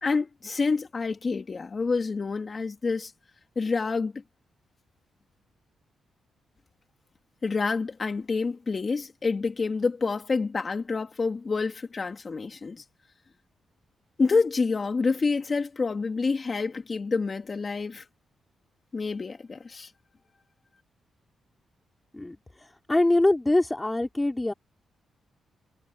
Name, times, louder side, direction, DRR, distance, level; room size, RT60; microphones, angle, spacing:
voice 1, 0.0-3.1 3.6-4.1 7.4-12.8 14.2-18.0 18.9-19.9, left 4 dB, 40° left, 2.9 m, -28 dB
voice 2, 22.9-24.5, left 2 dB, 15° left, 3.7 m, -23 dB
cardioid pair, 90°, 0 cm